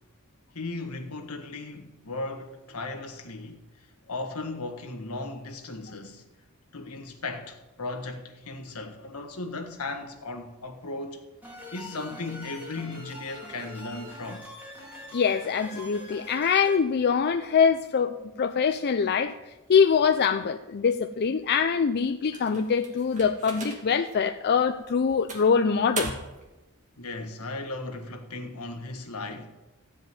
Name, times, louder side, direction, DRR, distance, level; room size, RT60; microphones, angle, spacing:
voice 1, 0.5-6.2 6.7-11.2 11.7-14.5 27.0-29.6, left 2 dB, 80° left, 1.5 m, -36 dB
sound 1, 11.4-16.8, left 1 dB, 10° right, 3.8 m, -43 dB
voice 2, 15.1-19.3 19.7-26.1, left 6 dB, 50° left, 0.5 m, -24 dB
sound 2, 22.3-24.0 24.6-24.7 25.3-26.5, right 3 dB, 35° right, 2.4 m, -38 dB
15.0 x 5.3 x 9.2 m
head